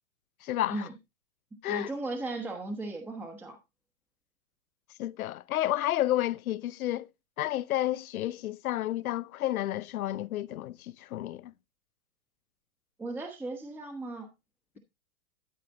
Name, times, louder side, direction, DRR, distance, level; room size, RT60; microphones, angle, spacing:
voice 1, 0.4-0.9 1.6-1.9 5.0-7.1 7.4-11.5, left 14 dB, 80° left, 0.7 m, -31 dB
voice 2, 1.7-3.6 13.0-14.3, right 2 dB, 5° right, 1.1 m, -36 dB
12.5 x 4.9 x 4.0 m
hypercardioid pair, 155°, 42 cm